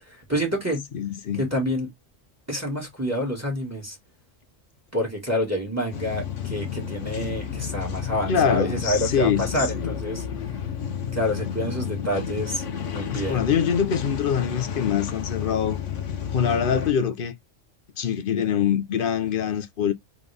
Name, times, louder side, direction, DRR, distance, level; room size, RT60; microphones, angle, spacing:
voice 1, 0.1-0.9 1.3-1.9 2.5-4.0 4.9-10.2 11.1-13.4, equal, 10° right, 1.9 m, -28 dB
voice 2, 0.9-1.4 8.3-10.0 13.1-15.8 16.3-17.3 18.0-19.9, left 8 dB, 50° left, 0.8 m, -24 dB
sound 1, 5.9-16.9, left 8 dB, 75° left, 1.2 m, -31 dB
3.9 x 3.5 x 3.3 m
omnidirectional pair, 1.3 m